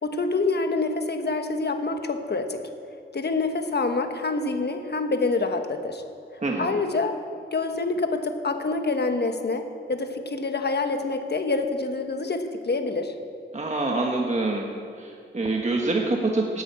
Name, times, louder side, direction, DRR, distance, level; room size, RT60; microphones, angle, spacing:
voice 1, 0.0-2.6 3.1-6.0 6.6-7.2 7.5-13.1, left 3 dB, 55° left, 6 dB, 1.2 m, -26 dB
voice 2, 6.4-6.8 13.5-14.7 15.0-16.6, right 2 dB, 35° right, 0 dB, 1.3 m, -26 dB
12.5 x 8.7 x 8.5 m, 2.4 s
wide cardioid pair, 85°, 21 cm